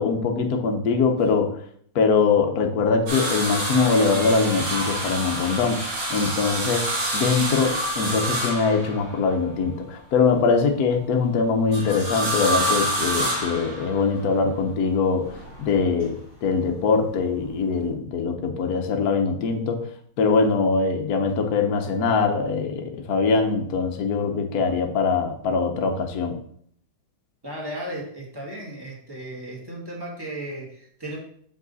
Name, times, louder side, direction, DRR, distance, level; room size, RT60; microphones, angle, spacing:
voice 1, 0.0-1.6 1.9-15.3 15.6-19.8 20.2-26.4, left 4 dB, 55° left, 4 dB, 1.2 m, -22 dB
sound 1, 3.1-9.3 11.7-14.2 15.3-16.0 17.5-17.6, right 1 dB, 90° right, 2.8 m, -27 dB
voice 2, 27.4-31.2, right 1 dB, 10° right, -3 dB, 1.6 m, -35 dB
6.3 x 5.2 x 4.0 m, 0.64 s
omnidirectional pair, 2.2 m